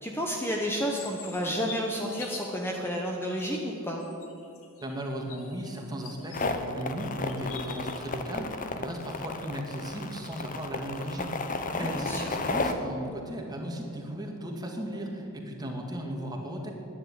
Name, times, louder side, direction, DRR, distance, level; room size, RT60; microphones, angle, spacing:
voice 1, 0.0-4.0 11.7-12.3, equal, 10° left, 0 dB, 1.1 m, -31 dB
sound 1, 0.9-2.7 3.4-6.6 6.9-8.0, left 6 dB, 70° left, 1.7 m, -45 dB
voice 2, 4.8-16.7, equal, 20° right, 1 dB, 2.0 m, -36 dB
sound 2, 6.3-12.7, left 3 dB, 40° left, 1.0 m, -33 dB
10.5 x 10.5 x 9.5 m, 2.9 s
head